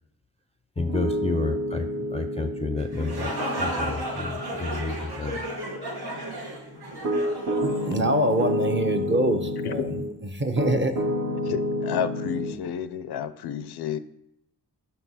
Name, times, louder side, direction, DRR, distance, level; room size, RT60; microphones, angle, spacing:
voice 1, 0.8-5.4, left 4 dB, 15° left, 7 dB, 0.4 m, -31 dB
Piano, 0.8-10.1 10.6-12.6, equal, 50° right, 1.1 m, -30 dB
sound 1, 2.8-8.5, right 1 dB, 75° right, 1.4 m, -33 dB
voice 2, 7.9-9.9 10.3-10.9, right 1 dB, 30° right, 5 dB, 0.9 m, -24 dB
voice 3, 11.4-14.0, left 8 dB, 80° left, 13 dB, 0.6 m, -31 dB
5.4 x 4.5 x 5.6 m, 0.83 s
cardioid pair, 65°, 38 cm